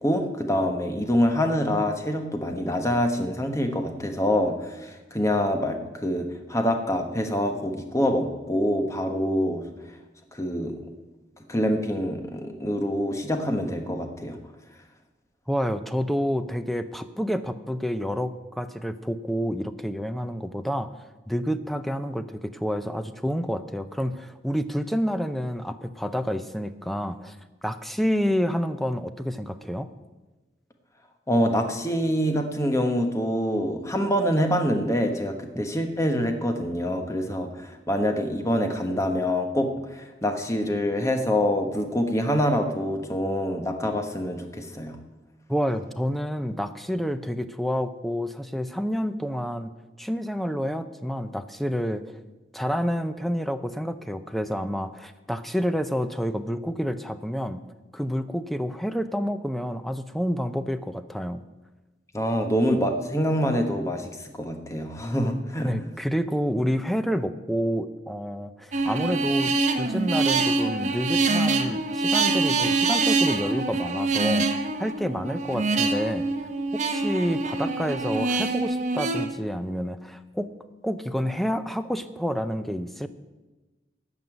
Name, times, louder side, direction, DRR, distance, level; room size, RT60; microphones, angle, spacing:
voice 1, 0.0-9.6 10.3-10.8 11.5-14.4 31.3-44.9 62.1-65.7, equal, 15° left, 5 dB, 1.2 m, -25 dB
voice 2, 15.5-20.9 21.3-27.4 27.6-29.9 45.5-49.7 50.0-52.0 52.5-57.6 57.9-61.4 65.6-74.5 74.8-76.3 76.7-80.5 80.8-83.1, equal, ahead, 10 dB, 0.5 m, -29 dB
sound 1, 68.7-79.3, right 3 dB, 40° right, 0.9 m, -25 dB
14.0 x 5.5 x 9.0 m, 1.2 s
head